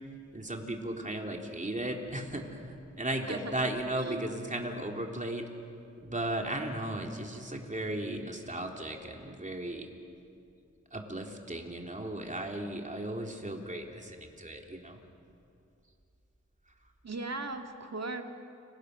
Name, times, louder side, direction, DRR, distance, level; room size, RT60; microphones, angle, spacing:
voice 1, 0.3-5.5 6.0-9.9 10.9-15.0, right 1 dB, 25° right, 2 dB, 3.4 m, -36 dB
voice 2, 3.3-3.7 4.0-4.2 17.0-18.2, right 3 dB, 60° right, 4 dB, 2.2 m, -38 dB
30.0 x 25.5 x 6.8 m, 2.5 s
wide cardioid pair, 60°, 30 cm